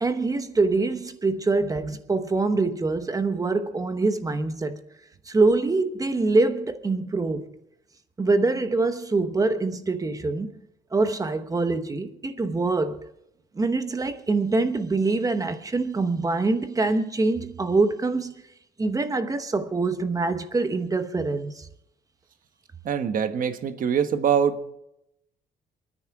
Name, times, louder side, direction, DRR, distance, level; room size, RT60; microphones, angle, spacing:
voice 1, 0.0-4.8 5.3-7.5 8.2-10.5 10.9-13.0 13.6-18.3 18.8-21.7, right 3 dB, 20° right, 1.0 m, -24 dB
voice 2, 22.8-24.7, right 7 dB, 55° right, 1.2 m, -24 dB
28.0 x 10.0 x 3.6 m
cardioid pair, 125°, 17 cm